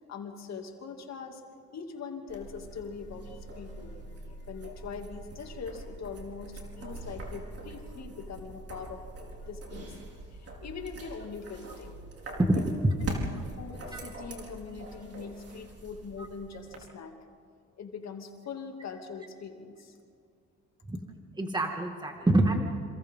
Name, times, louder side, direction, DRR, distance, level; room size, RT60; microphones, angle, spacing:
voice 1, 0.0-1.4 1.7-4.0 4.3-9.0 9.4-10.0 10.3-11.9 13.0-17.2 17.8-19.9, left 5 dB, 60° left, 3 dB, 2.7 m, -42 dB
sound 1, 2.3-16.8, right 2 dB, 50° right, 4.6 m, -43 dB
voice 2, 21.4-22.6, right 1 dB, 15° right, 2 dB, 2.0 m, -26 dB
27.5 x 27.0 x 3.8 m, 2.5 s
cardioid pair, 90°, 30 cm